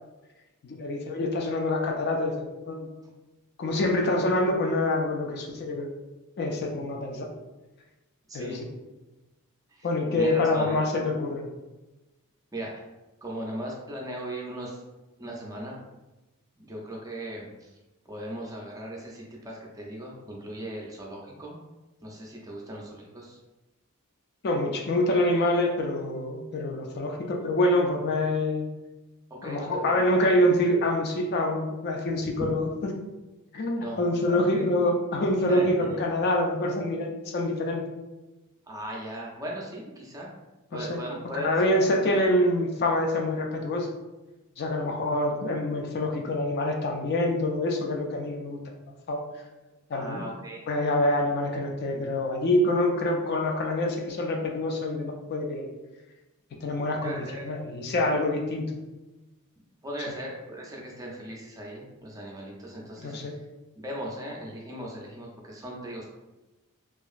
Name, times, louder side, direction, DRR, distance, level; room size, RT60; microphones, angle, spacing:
voice 1, 0.6-2.9 3.6-5.9 6.4-7.3 8.3-8.6 9.8-11.5 24.4-28.7 29.4-32.6 33.5-37.8 40.7-41.0 41.3-43.9 44.6-48.6 49.1-49.2 49.9-50.3 50.7-55.7 56.6-58.7 63.0-63.3, left 1 dB, 45° left, 1 dB, 0.4 m, -26 dB
voice 2, 8.3-8.6 9.7-9.9 10.1-10.8 12.5-12.8 13.2-14.8 15.2-15.8 16.6-17.7 18.1-21.6 22.0-23.4 29.3-29.9 32.4-32.5 33.8-34.0 34.2-34.7 35.5-36.0 38.7-40.3 40.7-41.5 49.9-50.7 57.0-57.5 59.8-63.3 63.8-66.1, right 1 dB, 15° right, -2 dB, 0.5 m, -38 dB
2.9 x 2.4 x 2.4 m, 1.1 s
head